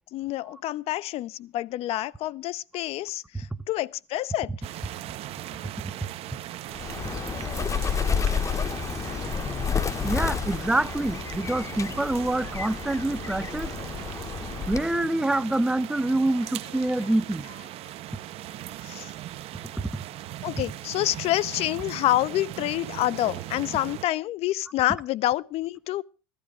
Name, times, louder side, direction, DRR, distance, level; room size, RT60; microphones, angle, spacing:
voice 1, 0.1-4.5 13.6-13.7 18.8-19.1 20.4-26.0, left 15 dB, 45° left, 0.7 m, -28 dB
sound 1, 4.6-24.0, right 14 dB, 45° right, 0.8 m, -39 dB
Bird, 6.7-15.0, left 6 dB, 20° left, 0.9 m, -30 dB
voice 2, 10.0-13.7 14.7-17.5, right 1 dB, 5° right, 0.8 m, -26 dB
15.0 x 13.0 x 4.9 m
hypercardioid pair, 80°, 14 cm